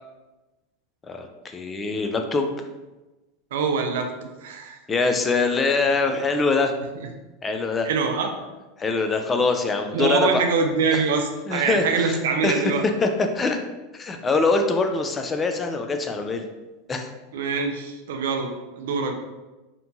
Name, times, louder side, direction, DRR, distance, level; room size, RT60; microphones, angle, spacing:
voice 1, 1.1-2.6 4.9-6.7 7.4-7.9 8.8-10.4 10.9-11.0 11.5-12.7 13.0-13.6 13.9-16.5 16.9-17.1, left 3 dB, 20° left, 5 dB, 0.3 m, -23 dB
voice 2, 3.5-4.8 7.8-8.3 9.9-12.8 17.3-19.1, right 5 dB, 80° right, 4 dB, 0.4 m, -24 dB
2.8 x 2.2 x 2.6 m, 1.1 s
hypercardioid pair, 110°, 0 cm